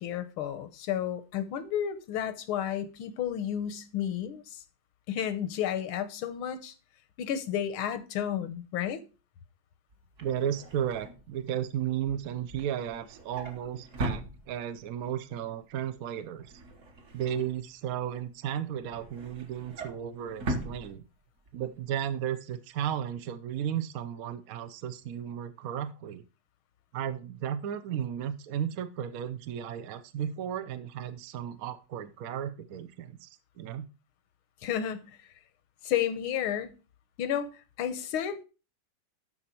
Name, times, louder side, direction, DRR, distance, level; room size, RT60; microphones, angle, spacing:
voice 1, 0.0-4.6 5.1-6.7 7.2-9.0 34.6-35.1 35.8-36.7 37.2-37.5 37.8-38.4, left 10 dB, 85° left, 1.7 m, -32 dB
Drawer open or close, 9.9-14.9 15.3-15.6 15.9-18.1 18.5-21.5 21.9-22.1 22.3-22.4, right 1 dB, 45° right, 1.4 m, -40 dB
voice 2, 10.2-16.5 17.1-21.0 21.5-26.2 26.9-33.3 33.6-33.9, right 9 dB, 70° right, 0.8 m, -34 dB
12.5 x 4.3 x 4.4 m
omnidirectional pair, 2.2 m